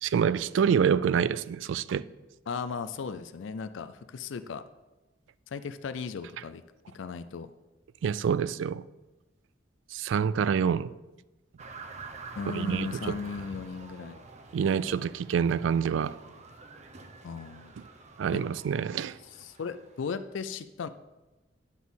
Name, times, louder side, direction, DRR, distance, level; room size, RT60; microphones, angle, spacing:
voice 1, 0.0-2.0 8.0-8.8 9.9-10.9 12.5-13.2 14.5-16.2 18.2-19.2, right 7 dB, 75° right, 0.3 m, -27 dB
voice 2, 2.5-4.6 5.5-6.6 6.9-7.5 12.4-14.2 17.2-17.7 18.3-18.4 19.3-20.9, left 5 dB, 75° left, 0.4 m, -36 dB
sound 1, 11.6-20.2, right 3 dB, 35° right, 0.7 m, -47 dB
9.5 x 4.1 x 7.0 m
head